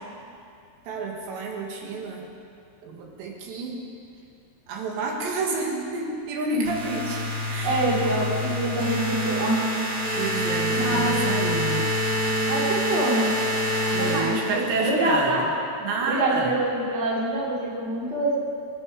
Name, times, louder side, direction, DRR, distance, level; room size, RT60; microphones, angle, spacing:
voice 1, 0.9-2.3 2.8-3.9 4.7-7.2 7.5-7.8 10.2-11.9 13.9-15.4 15.8-16.5, right 3 dB, 90° right, 0 dB, 4.0 m, -29 dB
sound 1, 6.6-15.0, equal, 45° right, 1.9 m, -26 dB
voice 2, 7.6-9.7 10.7-11.3 12.5-13.3 13.8-15.4 16.0-18.4, right 1 dB, 20° right, -4 dB, 2.3 m, -26 dB
25.0 x 9.7 x 4.9 m, 2.4 s
omnidirectional pair, 4.8 m